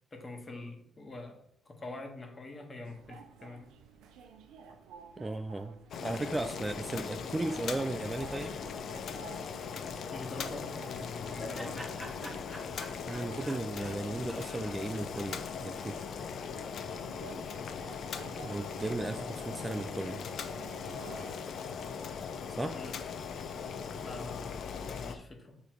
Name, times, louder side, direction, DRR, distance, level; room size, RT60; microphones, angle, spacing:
voice 1, 0.1-3.8 10.1-12.1 22.3-23.0 24.0-25.6, left 2 dB, 30° left, 3 dB, 1.5 m, -45 dB
sound 1, 2.8-22.3, right 6 dB, 90° right, 0.8 m, -52 dB
voice 2, 5.2-8.6 13.1-16.1 18.4-20.2 22.5-22.8, right 2 dB, 15° right, 8 dB, 0.4 m, -36 dB
Boiling, 5.9-25.2, left 6 dB, 65° left, 0.6 m, -39 dB
Laughter, 10.7-15.9, equal, ahead, 1.4 m, -48 dB
6.7 x 3.4 x 4.6 m, 0.70 s
cardioid pair, 90°, 0 cm